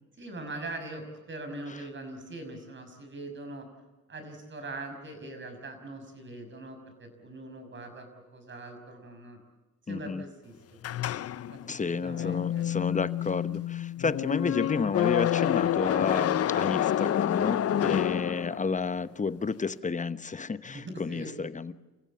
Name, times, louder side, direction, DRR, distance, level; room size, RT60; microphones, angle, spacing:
voice 1, 0.2-3.7 4.1-9.4 9.9-10.8 11.4-12.7 17.7-18.0 20.7-21.4, right 2 dB, 40° right, 7 dB, 6.0 m, -42 dB
voice 2, 9.9-10.2 11.7-21.7, left 4 dB, 25° left, 14 dB, 1.0 m, -31 dB
sound 1, 10.8-18.9, left 11 dB, 55° left, 0.7 m, -28 dB
28.5 x 15.5 x 8.5 m, 1.2 s
cardioid pair, 90°, 30 cm